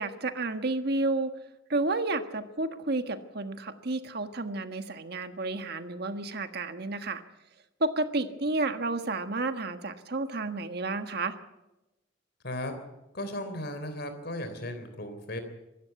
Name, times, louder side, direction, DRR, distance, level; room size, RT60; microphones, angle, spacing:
voice 1, 0.0-1.3 1.7-7.2 7.8-11.4, right 2 dB, 55° right, 8 dB, 1.4 m, -31 dB
voice 2, 12.4-12.8 13.1-15.4, left 1 dB, 55° left, 8 dB, 3.5 m, -36 dB
24.5 x 13.5 x 8.1 m, 0.99 s
head